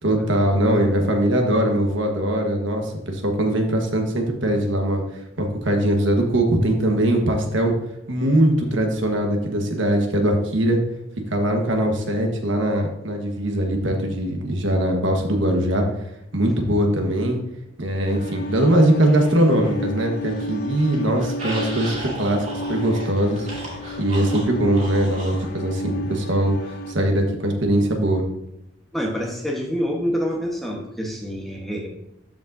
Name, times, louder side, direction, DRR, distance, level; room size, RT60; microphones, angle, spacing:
voice 1, 0.0-5.0 5.4-7.7 8.1-10.8 11.3-15.8 16.3-17.4 17.8-23.5 24.0-28.2, right 1 dB, 75° right, 3 dB, 1.3 m, -21 dB
sound 1, 18.1-26.9, equal, 45° left, 0.3 m, -32 dB
sound 2, 18.5-19.8 20.2-25.5, right 1 dB, 40° right, 2.7 m, -36 dB
voice 2, 28.9-31.9, equal, ahead, -1 dB, 1.1 m, -27 dB
12.5 x 5.2 x 2.6 m, 0.80 s
head